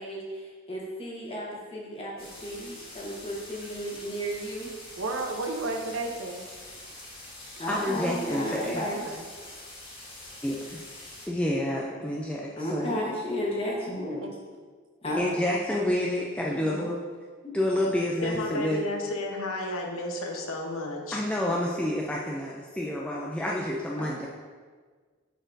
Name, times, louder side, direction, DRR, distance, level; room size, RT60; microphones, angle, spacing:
voice 1, 0.0-4.7 7.6-9.0 12.5-14.2 15.0-15.2 17.4-17.5 24.0-24.3, equal, 30° left, -4 dB, 1.3 m, -33 dB
sound 1, 2.2-11.3, left 1 dB, 45° left, 1.9 m, -45 dB
voice 2, 5.0-6.5 8.8-9.2 14.2-14.3 16.5-16.9, right 2 dB, 70° right, 3 dB, 0.7 m, -33 dB
voice 3, 7.7-8.8 10.4-10.8 11.3-13.0 15.2-17.0 17.5-18.8 21.1-24.3, left 1 dB, 5° left, -3 dB, 0.4 m, -29 dB
voice 4, 18.2-21.2, left 2 dB, 85° left, 1 dB, 0.9 m, -32 dB
10.0 x 4.1 x 2.6 m, 1.5 s
head